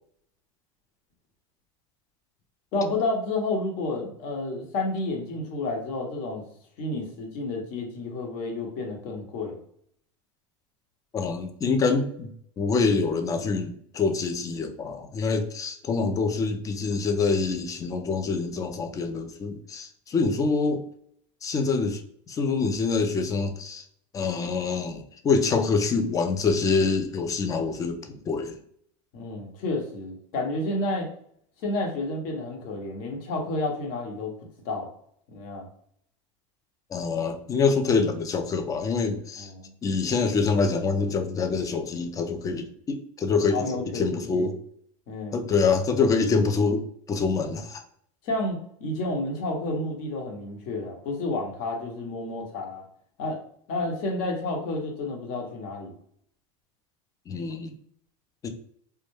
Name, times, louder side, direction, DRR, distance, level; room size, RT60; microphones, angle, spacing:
voice 1, 2.7-6.4 6.8-9.6 29.1-31.1 31.6-34.3 34.6-34.9 35.3-35.7 39.4-39.7 43.5-44.5 45.1-45.4 48.2-52.8 53.2-53.4 53.7-55.9, left 2 dB, 55° left, 1 dB, 0.8 m, -30 dB
voice 2, 11.1-20.8 21.4-22.0 22.3-23.8 24.1-28.6 36.9-39.5 39.8-43.6 43.9-44.5 45.3-47.8 57.3-57.8 58.4-58.5, left 4 dB, 20° left, 7 dB, 0.3 m, -25 dB
2.2 x 2.1 x 3.0 m, 0.67 s
supercardioid pair, 115°, 17 cm